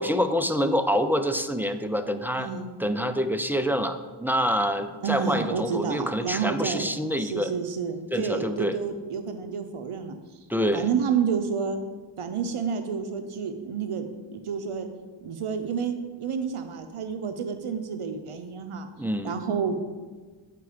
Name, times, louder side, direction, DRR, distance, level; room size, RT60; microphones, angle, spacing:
voice 1, 0.0-2.5 2.8-7.5 8.1-8.8 10.5-10.9 19.0-19.4, equal, 5° right, 8 dB, 0.3 m, -26 dB
voice 2, 2.4-2.7 5.0-6.9 7.2-10.2 10.7-11.8 12.2-14.1 14.3-14.9 15.2-18.9 19.2-19.7, right 6 dB, 85° right, 7 dB, 0.7 m, -29 dB
8.4 x 4.5 x 4.9 m, 1.4 s
wide cardioid pair, 60°, 50 cm